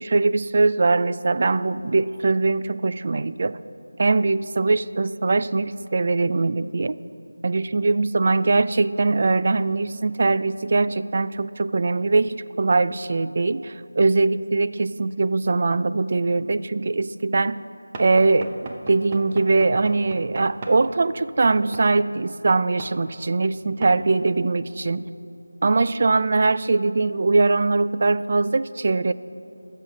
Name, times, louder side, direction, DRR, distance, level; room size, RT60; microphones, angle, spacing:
voice 1, 0.0-3.6 4.0-7.0 7.4-17.5 18.0-25.1 25.6-29.1, right 3 dB, 35° right, 14 dB, 0.3 m, -21 dB
Knock / Wood, 17.9-20.8 21.7-21.9 22.8-23.0 23.8-24.0, right 2 dB, 20° right, 0.8 m, -37 dB
22.0 x 7.5 x 5.0 m, 2.7 s
figure-of-eight pair, 175°, 0 cm